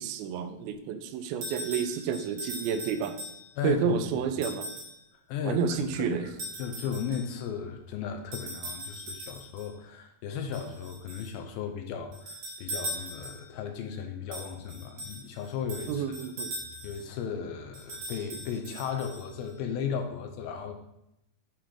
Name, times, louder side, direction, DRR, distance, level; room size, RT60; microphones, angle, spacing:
voice 1, 0.0-3.2 3.6-4.7 5.5-6.3 15.9-16.5, right 7 dB, 80° right, 8 dB, 2.3 m, -30 dB
sound 1, 1.4-3.7 4.4-5.0 6.4-7.4 8.3-9.7 10.5-11.4 12.1-13.6 14.3-17.1 17.7-19.5, right 1 dB, 65° right, 3.1 m, -40 dB
voice 2, 3.6-4.3 5.3-5.6 6.0-6.3 6.6-16.2 16.8-20.8, left 7 dB, 80° left, 5 dB, 2.3 m, -35 dB
8.6 x 3.3 x 3.7 m, 0.82 s
omnidirectional pair, 4.4 m